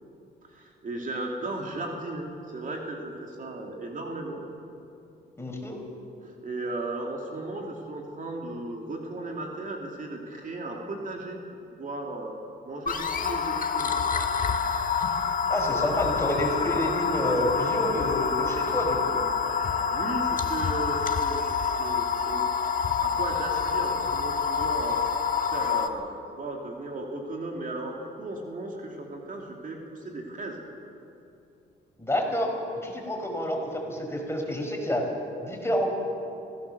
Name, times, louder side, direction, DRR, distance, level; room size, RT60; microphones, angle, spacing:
voice 1, 0.5-2.3 2.5-4.4 6.2-11.4 11.8-12.3 12.6-14.0 19.9-22.5 23.0-25.0 25.5-26.1 26.4-30.6, right 2 dB, 40° right, 0 dB, 2.8 m, -35 dB
voice 2, 5.4-5.8 15.5-19.2 32.0-32.5 32.8-35.1 35.4-35.9, equal, 10° left, 1 dB, 5.0 m, -28 dB
sound 1, 12.9-25.9, left 6 dB, 45° left, 1.5 m, -27 dB
25.5 x 16.5 x 6.9 m, 2.7 s
cardioid pair, 90°, 20 cm